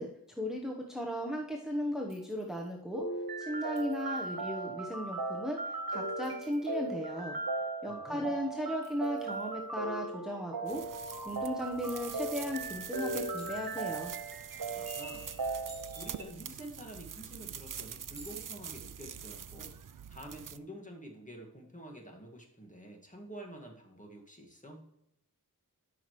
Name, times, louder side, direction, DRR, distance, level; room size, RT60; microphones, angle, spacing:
voice 1, 0.0-3.1 3.4-5.6 5.9-7.4 7.8-10.8 11.3-14.1, equal, ahead, 0 dB, 1.1 m, -36 dB
Chink clink, 2.1-2.7 3.8-4.4 6.0-6.9 8.8-9.7 11.1-11.8 13.4-14.1 15.5-16.3 18.1-18.8, right 1 dB, 50° right, 3.2 m, -58 dB
s chimes random, 2.9-16.2, right 3 dB, 80° right, 1.4 m, -38 dB
voice 2, 7.9-8.4 14.7-15.4 16.0-19.8 20.1-24.9, right 1 dB, 20° left, 0 dB, 1.9 m, -48 dB
sound 1, 10.7-20.6, right 8 dB, 65° right, 0.5 m, -45 dB
12.5 x 5.8 x 3.2 m, 0.85 s
wide cardioid pair, 65°, 35 cm